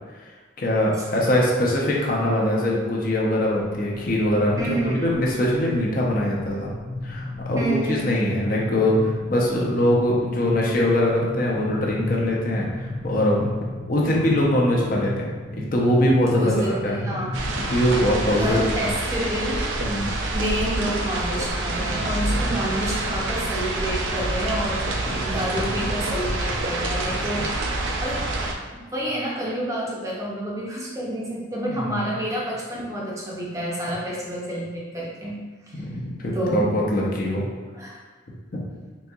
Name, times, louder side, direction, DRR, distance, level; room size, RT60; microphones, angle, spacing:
voice 1, 0.6-6.7 7.0-13.5 13.9-15.3 15.5-17.0 17.5-18.9 19.8-20.1 22.2-22.6 25.1-25.2 27.1-27.2 31.7-32.2 35.7-37.4, left 1 dB, 45° left, -3 dB, 0.6 m, -23 dB
sound 1, 3.6-17.8, left 2 dB, 85° left, 0.7 m, -33 dB
voice 2, 4.6-5.1 7.6-8.1 16.4-17.3 18.3-19.6 20.3-24.8 25.2-27.5 27.8-28.3 28.9-35.4 35.7-35.8 36.3-36.6 37.8-38.0, equal, 15° right, -5 dB, 0.5 m, -28 dB
sound 2, 17.3-28.5, right 2 dB, 75° right, 0.4 m, -27 dB
4.1 x 2.7 x 2.3 m, 1.4 s
head